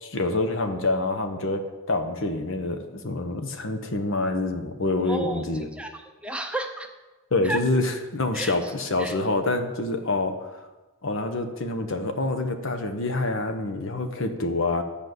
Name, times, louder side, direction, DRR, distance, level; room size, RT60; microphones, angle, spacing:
voice 1, 0.0-5.7 7.3-10.5 11.0-14.8, left 2 dB, 60° left, 7 dB, 1.0 m, -26 dB
voice 2, 5.1-5.4 5.8-6.9 7.4-7.6 8.3-8.7 9.0-9.2, right 2 dB, 5° right, 4 dB, 0.6 m, -32 dB
10.0 x 5.2 x 8.0 m, 1.2 s
head